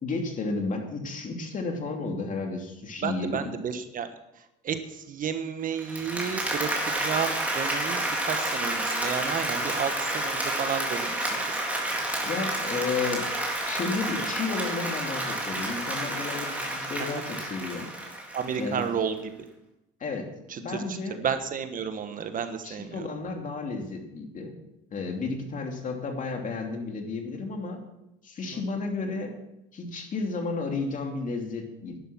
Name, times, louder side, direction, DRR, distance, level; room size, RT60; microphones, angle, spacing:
voice 1, 0.0-3.5 9.5-9.6 12.2-13.3 13.7-17.9 18.6-18.8 20.0-20.3 20.6-21.2 22.6-24.5 24.9-27.8 28.2-29.4 29.7-32.0, left 3 dB, 40° left, 3 dB, 2.9 m, -32 dB
voice 2, 3.0-4.1 4.6-11.6 18.3-19.2 20.5-22.9 28.5-28.6, right 7 dB, 45° right, 9 dB, 1.3 m, -32 dB
Applause, 5.8-18.8, right 1 dB, 5° right, 3.6 m, -30 dB
11.5 x 11.0 x 6.2 m, 0.89 s
supercardioid pair, 95°, 20 cm